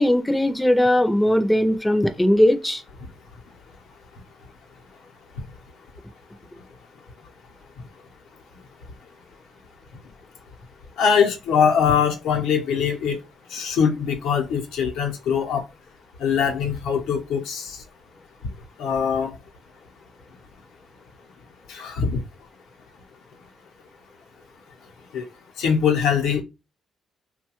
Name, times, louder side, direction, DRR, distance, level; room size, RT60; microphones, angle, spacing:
voice 1, 0.0-2.8, left 1 dB, 10° left, 0.4 m, -19 dB
voice 2, 11.0-13.2 13.5-15.6 16.2-17.8 18.8-19.3 21.7-22.1 25.1-25.2 25.6-26.4, left 7 dB, 90° left, 0.7 m, -22 dB
3.0 x 2.2 x 2.9 m
cardioid pair, 90°, 0 cm